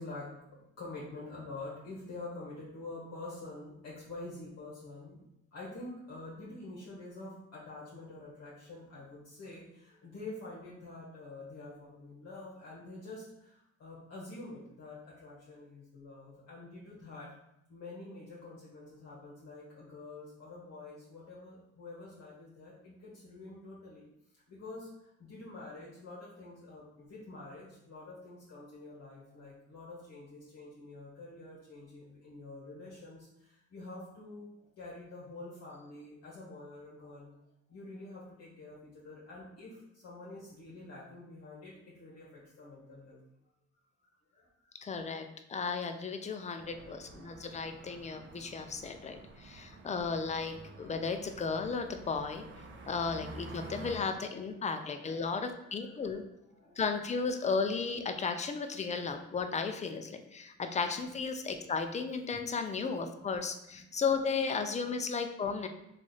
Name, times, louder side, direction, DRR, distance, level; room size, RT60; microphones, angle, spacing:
voice 1, 0.0-5.2 5.5-17.3 17.7-24.1 24.5-34.5 34.8-43.2 44.0-45.0 46.3-47.2 52.4-53.3 53.5-57.2 61.1-61.2 61.6-61.7 62.6-63.3 63.7-63.8 64.9-65.0 65.4-65.6, left 2 dB, 60° left, -7 dB, 1.1 m, -48 dB
voice 2, 44.8-52.4 52.9-56.2 56.8-65.7, left 5 dB, 25° left, 7 dB, 0.4 m, -34 dB
sound 1, 46.6-54.0, right 2 dB, 40° right, 0.5 m, -50 dB
3.2 x 2.5 x 3.9 m, 0.82 s
cardioid pair, 90°, 30 cm